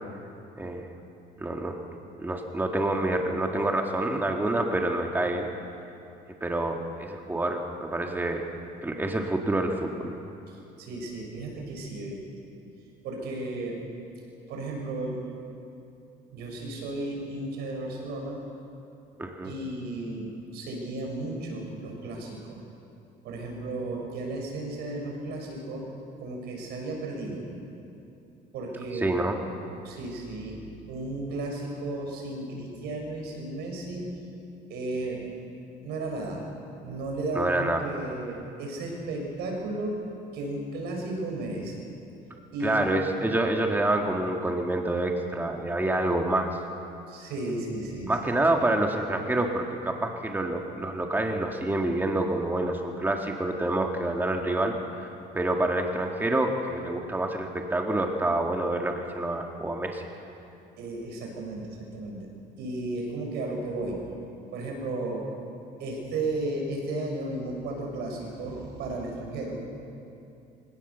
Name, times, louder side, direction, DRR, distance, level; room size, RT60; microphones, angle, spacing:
voice 1, 0.6-0.9 1.4-1.8 2.2-5.5 6.4-8.4 8.8-10.1 19.2-19.5 28.9-29.4 37.4-37.9 42.6-46.6 48.1-60.0, right 2 dB, 10° right, 2 dB, 1.8 m, -27 dB
voice 2, 10.8-12.2 13.0-13.8 14.5-15.2 16.3-18.4 19.4-22.6 23.2-25.9 26.2-27.5 28.5-29.1 29.8-34.1 34.7-35.3 35.8-36.5 36.8-40.0 40.3-41.9 42.5-42.8 47.1-48.2 60.8-62.3 62.6-64.0 64.5-65.3 65.8-69.6, right 2 dB, 75° right, 1 dB, 6.1 m, -34 dB
25.0 x 17.5 x 6.9 m, 2.7 s
cardioid pair, 110°, 17 cm